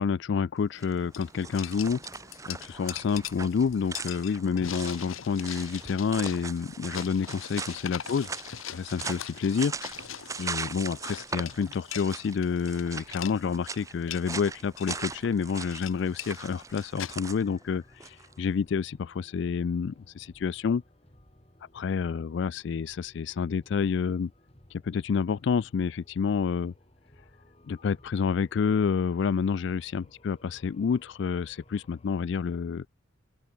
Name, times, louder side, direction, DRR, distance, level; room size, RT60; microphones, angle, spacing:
voice 1, 0.0-2.0 2.5-8.3 8.7-9.7 10.4-20.8 21.7-24.3 24.7-26.7 27.7-32.9, left 6 dB, 60° left, 0.3 m, -29 dB
sound 1, 0.7-0.9 1.1-12.8 13.1-13.4 13.8-14.4 14.8-15.0 15.5-17.2, left 10 dB, 90° left, 1.2 m, -41 dB
sound 2, 0.7-18.3, right 4 dB, 15° right, 0.6 m, -40 dB
sound 3, 17.2-32.2, left 1 dB, 30° left, 3.3 m, -58 dB
open air
head